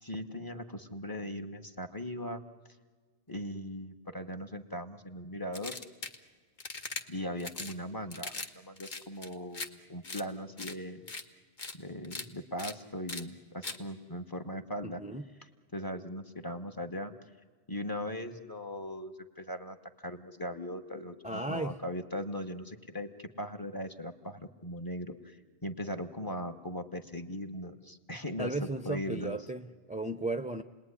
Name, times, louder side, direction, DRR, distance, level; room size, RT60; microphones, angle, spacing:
voice 1, 0.0-2.4 3.3-5.8 7.1-11.0 11.7-15.0 15.7-17.1 17.7-19.8 20.0-28.5 28.8-29.4, equal, 20° left, 10 dB, 1.3 m, -39 dB
sound 1, 5.5-6.2 6.6-7.0 7.4-7.7 8.1-8.5 8.8-9.7 10.0-10.2 10.6-10.7 11.1-11.2 11.6-11.7 12.0-12.2 12.6-12.7 13.1-13.2 13.6-13.8, left 3 dB, 45° left, 1.4 m, -40 dB
voice 2, 14.8-15.2 21.2-21.8 28.4-30.6, right 2 dB, 10° right, 9 dB, 0.5 m, -35 dB
29.5 x 20.0 x 9.9 m, 1.5 s
omnidirectional pair, 1.2 m